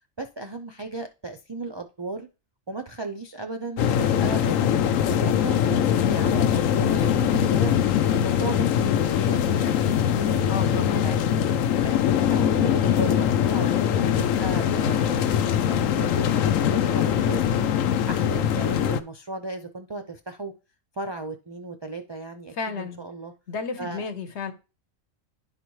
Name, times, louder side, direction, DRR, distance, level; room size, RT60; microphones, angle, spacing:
voice 1, 0.2-2.3 2.7-7.7 8.1-11.4 11.8-12.0 12.3-17.7 18.1-20.5 20.9-23.3 23.8-24.0, right 3 dB, 40° right, 0.4 m, -36 dB
sound 1, 3.8-19.0, left 9 dB, 80° left, 1.0 m, -22 dB
voice 2, 10.5-11.1 22.5-23.0 23.5-24.5, left 5 dB, 60° left, 1.2 m, -32 dB
11.0 x 4.1 x 3.1 m
omnidirectional pair, 1.4 m